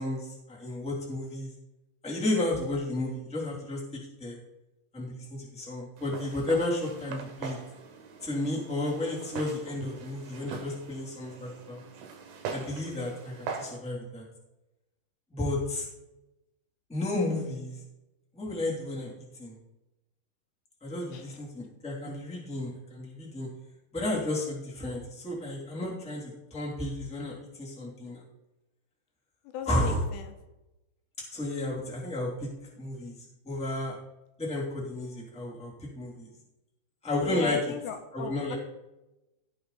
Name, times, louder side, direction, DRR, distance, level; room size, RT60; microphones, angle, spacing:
voice 1, 0.0-1.5 2.0-3.8 4.2-4.4 4.9-7.6 8.2-11.8 12.5-14.2 15.3-15.9 16.9-17.8 18.3-19.1 19.4-19.6 20.8-23.5 23.9-28.2 29.7-30.0 31.3-32.5 32.8-33.1 33.4-33.9 34.4-36.3 37.0-37.6 38.1-38.5, left 1 dB, ahead, -5 dB, 1.8 m, -32 dB
Walk footsteps, 6.0-13.8, right 5 dB, 70° right, 3.2 m, -42 dB
voice 2, 29.4-30.3 37.3-38.5, left 9 dB, 80° left, 6 dB, 2.8 m, -37 dB
16.5 x 5.8 x 4.1 m, 0.95 s
omnidirectional pair, 5.1 m